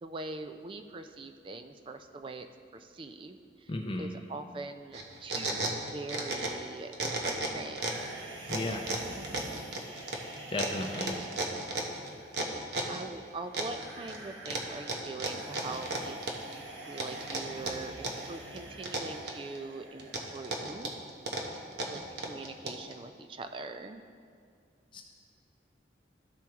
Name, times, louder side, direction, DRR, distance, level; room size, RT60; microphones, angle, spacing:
voice 1, 0.0-2.5 2.7-3.7 4.0-7.8 8.6-8.7 11.0-11.2 12.9-16.2 16.5-20.9 21.9-24.1, right 3 dB, 30° right, 8 dB, 0.3 m, -43 dB
voice 2, 3.7-4.1 8.5-8.8 10.5-11.1 24.9-25.0, left 2 dB, 25° left, 1 dB, 0.5 m, -34 dB
sound 1, 4.9-6.7 6.9-8.1 8.5-13.0 13.5-14.2 14.5-16.6 17.0-18.3 18.6-19.6 20.0-22.9, right 2 dB, 65° right, 0.8 m, -34 dB
sound 2, 7.7-20.7, right 2 dB, 90° right, 1.1 m, -47 dB
13.0 x 4.5 x 3.5 m, 2.2 s
head